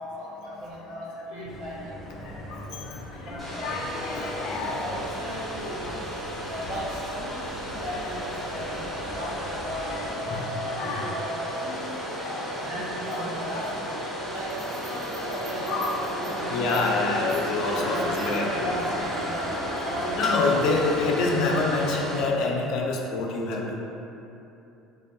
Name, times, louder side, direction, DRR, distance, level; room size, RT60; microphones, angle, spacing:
voice 1, 0.0-2.0 2.5-2.8 3.2-3.8 4.1-6.2 6.5-11.6 12.5-13.8 14.3-16.9 17.4-17.5 17.9-18.3 18.6-19.0 19.2-20.4, equal, 70° right, -9 dB, 0.8 m, -36 dB
sound 1, 1.5-10.1, left 1 dB, 25° left, 0.6 m, -42 dB
voice 2, 2.2-4.9 5.6-5.8 7.9-8.0 9.1-11.1 11.6-11.8 12.0-12.7 13.5-13.8 14.9-15.1 15.6-19.1 19.4-19.8 20.1-23.8, left 3 dB, 65° left, 0 dB, 0.3 m, -28 dB
Domestic sounds home sounds, 3.4-22.2, equal, ahead, 1.0 m, -36 dB
sound 2, 8.1-22.4, equal, 25° right, 0.5 m, -35 dB
2.3 x 2.1 x 2.6 m, 2.8 s
supercardioid pair, 100°, 0 cm